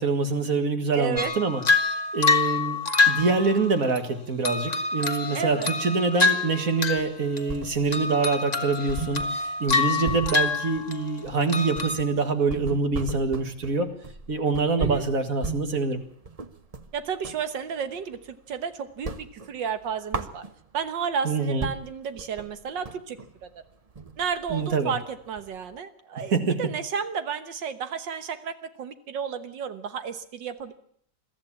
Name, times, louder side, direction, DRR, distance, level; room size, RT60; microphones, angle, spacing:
voice 1, 0.0-2.8 3.1-13.9 14.3-16.0 21.2-21.7 24.5-24.9 26.3-26.6, right 4 dB, 50° right, 7 dB, 2.3 m, -25 dB
voice 2, 0.9-1.3 5.3-5.7 9.9-10.2 14.8-15.1 16.9-20.5 20.7-23.5 24.2-30.7, right 7 dB, 80° right, 10 dB, 1.9 m, -32 dB
sound 1, 1.2-4.0 4.4-7.1 7.4-7.7 7.9-11.2 11.5-12.0, left 4 dB, 25° left, 1.4 m, -26 dB
sound 2, 7.0-8.1 8.4-8.5 8.9-17.5 17.9-18.6 18.9-20.9 21.3-21.4 21.6-25.8, right 4 dB, 30° right, 0.7 m, -36 dB
22.0 x 14.0 x 8.7 m, 0.64 s
omnidirectional pair, 2.0 m